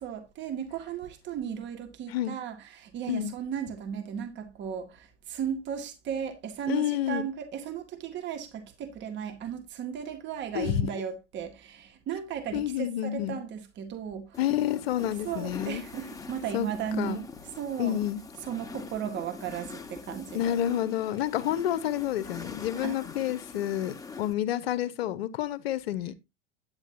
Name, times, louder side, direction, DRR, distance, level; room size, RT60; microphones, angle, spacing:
voice 1, 0.0-14.4 15.2-17.3 17.6-18.0 18.4-20.6 22.8-23.0, right 8 dB, 30° right, 1.9 m, -35 dB
voice 2, 6.7-7.2 10.5-10.9 12.5-13.4 14.4-15.8 16.5-16.7 17.0-17.2 17.8-18.2 20.3-26.1, left 11 dB, 50° left, 1.1 m, -29 dB
sound 1, 14.3-24.3, left 4 dB, 10° left, 1.5 m, -43 dB
9.8 x 9.7 x 2.8 m
figure-of-eight pair, 90°, 38 cm